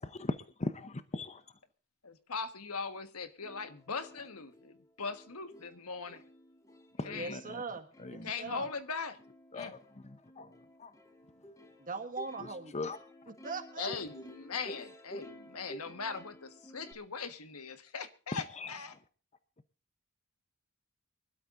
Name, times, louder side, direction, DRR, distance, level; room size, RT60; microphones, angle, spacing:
voice 1, 0.0-1.6 6.9-7.6 8.0-8.6 9.5-11.0 11.4-11.5 12.4-13.0 18.3-19.0, left 2 dB, 30° left, 0.8 m, -40 dB
voice 2, 2.0-6.2 7.0-7.4 8.2-9.2 9.5-9.7 13.8-18.9, left 5 dB, 75° left, 1.5 m, -40 dB
Plucked string instrument, 3.1-3.2 3.4-16.9, equal, 15° left, 2.0 m, -52 dB
voice 3, 7.1-8.7 11.8-12.7 13.4-13.9, right 4 dB, 40° right, 1.8 m, -40 dB
24.5 x 12.5 x 2.6 m
head